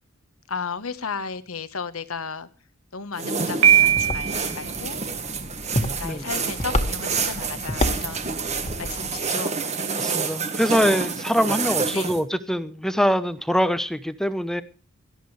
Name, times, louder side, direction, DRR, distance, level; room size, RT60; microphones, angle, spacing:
voice 1, 0.5-2.5 2.9-5.1 6.0-8.3 8.8-9.6 11.9-12.1, left 5 dB, 80° left, 1.3 m, -34 dB
sound 1, 3.1-12.2, right 5 dB, 35° right, 1.6 m, -28 dB
Piano, 3.6-4.6, right 10 dB, 75° right, 1.7 m, -18 dB
sound 2, 3.7-9.3, left 1 dB, 30° left, 1.9 m, -30 dB
voice 2, 10.0-14.6, equal, ahead, 0.9 m, -23 dB
18.0 x 13.5 x 3.3 m
head